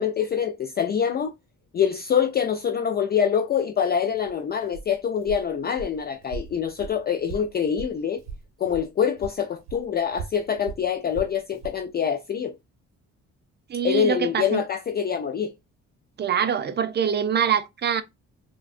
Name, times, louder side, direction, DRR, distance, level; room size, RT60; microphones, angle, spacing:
voice 1, 0.0-1.3 1.7-8.2 8.6-12.6 13.8-15.5, left 8 dB, 35° left, 0.4 m, -25 dB
Walk footsteps, 4.1-8.9 9.2-11.8, right 5 dB, 65° right, 0.8 m, -39 dB
voice 2, 13.7-14.6 16.2-18.0, right 8 dB, 35° right, 0.4 m, -24 dB
3.4 x 2.2 x 2.3 m
cardioid pair, 90°, 30 cm